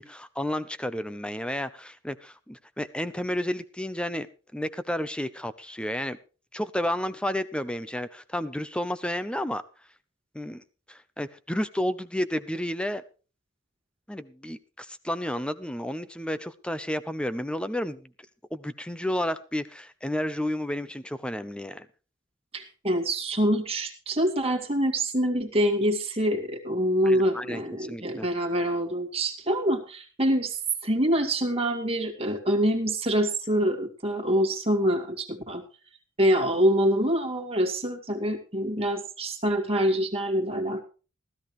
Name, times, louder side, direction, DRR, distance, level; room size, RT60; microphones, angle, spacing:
voice 1, 0.0-4.3 4.5-6.2 6.5-9.6 10.3-10.6 10.9-13.0 14.1-18.1 18.5-21.9 27.0-28.3, left 1 dB, 5° left, 13 dB, 0.8 m, -31 dB
voice 2, 22.5-30.5 30.8-35.6 36.2-40.8, equal, 30° right, 3 dB, 2.4 m, -25 dB
16.0 x 14.0 x 3.2 m, 0.35 s
head